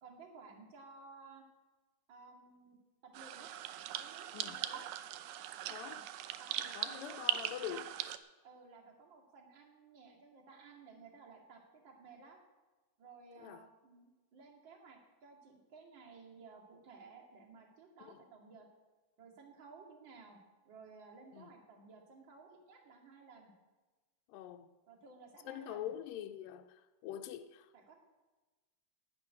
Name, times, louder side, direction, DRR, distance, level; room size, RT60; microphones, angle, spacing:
voice 1, 0.0-1.4 2.1-2.8 3.0-3.6 3.9-4.8 5.7-6.0 6.4-7.2 7.6-7.8 8.4-12.4 13.0-18.7 19.2-20.4 20.6-23.5 24.9-25.9 27.7-27.9, right 4 dB, 40° right, 2.7 m, -56 dB
sound 1, 3.1-8.2, right 12 dB, 80° right, 2.2 m, -40 dB
voice 2, 5.7-6.0 6.8-7.9 13.4-13.6 18.1-18.2 21.3-21.5 24.3-24.7 25.5-27.7, left 11 dB, 85° left, 2.3 m, -44 dB
11.0 x 8.6 x 9.7 m
omnidirectional pair, 3.9 m